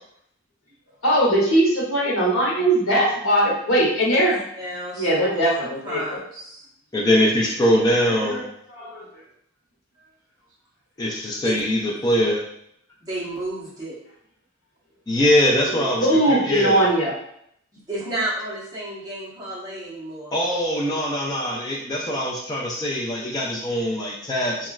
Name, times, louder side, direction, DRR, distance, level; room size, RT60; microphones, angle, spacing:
voice 1, 1.0-4.4 4.9-6.2 8.0-8.4 8.7-9.1 15.6-17.1, right 1 dB, 85° left, -4 dB, 1.0 m, -20 dB
voice 2, 4.6-6.7 11.4-11.6 13.0-14.0 17.7-20.3, right 1 dB, 20° right, -8 dB, 0.9 m, -32 dB
voice 3, 6.9-8.4 11.0-12.4 15.1-16.9 20.3-24.7, left 1 dB, 20° left, -4 dB, 0.4 m, -22 dB
3.0 x 2.3 x 2.3 m, 0.71 s
head